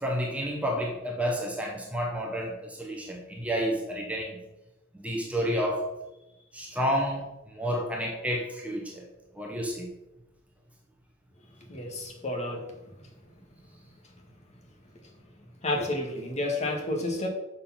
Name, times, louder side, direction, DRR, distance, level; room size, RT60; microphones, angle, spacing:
voice 1, 0.0-4.3 4.9-5.9 6.5-7.3 7.6-9.0 9.4-9.9, equal, 5° right, -1 dB, 1.1 m, -30 dB
voice 2, 11.7-12.6 15.6-17.3, left 1 dB, 35° left, 1 dB, 1.8 m, -30 dB
6.9 x 6.7 x 5.8 m, 0.98 s
head